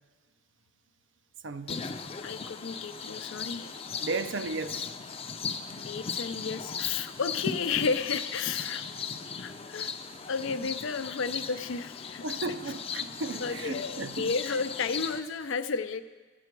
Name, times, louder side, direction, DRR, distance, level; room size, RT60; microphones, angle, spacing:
voice 1, 1.4-1.8 4.0-4.9 12.2-14.3, right 3 dB, 70° right, 11 dB, 0.5 m, -35 dB
sound 1, 1.7-15.2, left 6 dB, 30° left, 0.5 m, -37 dB
voice 2, 2.2-3.8 5.7-8.8 9.4-9.9 10.3-12.2 13.4-16.0, left 5 dB, 90° left, 10 dB, 0.5 m, -32 dB
13.0 x 8.5 x 4.6 m, 1.3 s
head